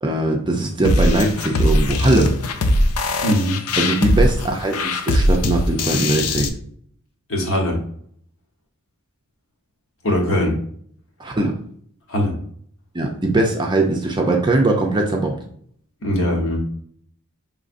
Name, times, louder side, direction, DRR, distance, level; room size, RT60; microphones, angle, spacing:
voice 1, 0.0-2.4 3.8-6.5 11.2-11.5 12.9-15.4, right 2 dB, 20° right, 1 dB, 0.5 m, -20 dB
sound 1, 0.8-6.5, left 1 dB, 80° left, 0.5 m, -20 dB
voice 2, 3.2-3.6 7.3-7.8 10.0-10.6 12.1-12.4 16.0-16.6, equal, 60° left, 0 dB, 1.1 m, -20 dB
5.2 x 3.2 x 2.6 m, 0.62 s
head